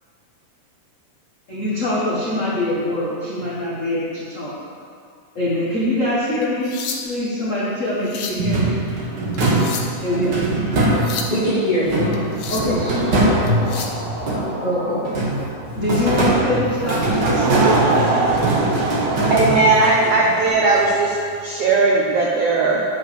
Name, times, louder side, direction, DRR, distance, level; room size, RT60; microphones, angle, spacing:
voice 1, 1.5-4.5 5.3-6.8 7.0-8.8 10.0-10.4 12.5-13.3 14.6-15.0 15.7-17.7, left 1 dB, 55° left, -8 dB, 0.8 m, -23 dB
sound 1, 6.4-7.3 7.9-8.5 9.3-10.1 10.8-11.4 12.1-12.8 13.5-14.0 16.0-16.2 16.7-16.9 17.4-17.5 18.7-19.3 20.4-20.6, left 5 dB, 85° left, 1.3 m, -32 dB
sound 2, 8.4-11.4 11.9-14.7 15.1-20.0, right 2 dB, 40° right, 1.6 m, -21 dB
voice 2, 11.3-15.0 15.4-15.8, equal, 15° left, -9 dB, 2.1 m, -26 dB
Laughter / Crowd, 16.9-21.1, right 3 dB, 65° right, 1.7 m, -23 dB
voice 3, 19.3-22.8, right 3 dB, 85° right, -2 dB, 1.3 m, -17 dB
10.5 x 5.8 x 6.9 m, 2.4 s
omnidirectional pair, 4.0 m